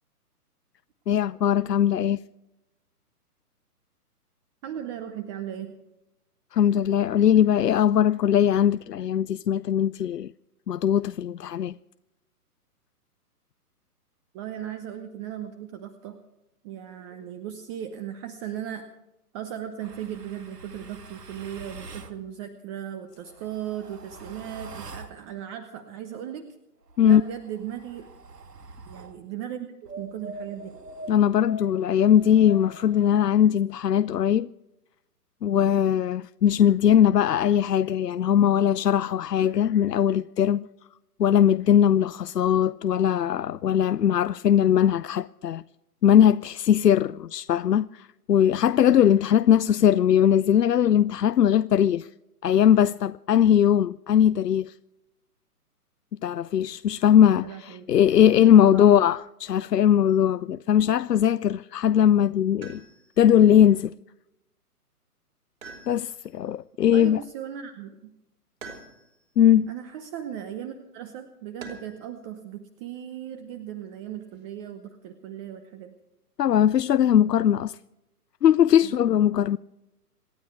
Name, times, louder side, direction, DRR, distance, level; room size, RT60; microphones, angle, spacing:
voice 1, 1.1-2.2 6.5-10.3 10.7-11.7 27.0-27.2 31.1-34.5 35.4-40.7 41.2-45.6 46.0-52.1 52.4-54.7 56.2-62.8 63.2-63.9 65.9-67.2 69.4-69.7 76.4-77.8 78.4-79.6, left 9 dB, 85° left, 0.6 m, -20 dB
voice 2, 4.6-5.7 14.3-16.2 16.6-18.8 19.3-26.5 27.0-28.1 28.9-30.7 57.3-57.9 58.7-58.9 66.9-68.1 69.7-75.9 78.8-79.0, right 10 dB, 20° right, 0.8 m, -37 dB
sound 1, 19.8-22.2 23.1-25.2 26.8-29.2 29.8-33.3, right 2 dB, 80° right, 2.1 m, -43 dB
sound 2, 62.6-63.3 65.6-66.4 68.6-69.3 71.6-72.1 73.8-74.4, right 4 dB, 60° right, 4.4 m, -45 dB
27.5 x 10.5 x 4.7 m
figure-of-eight pair, 135°, 47 cm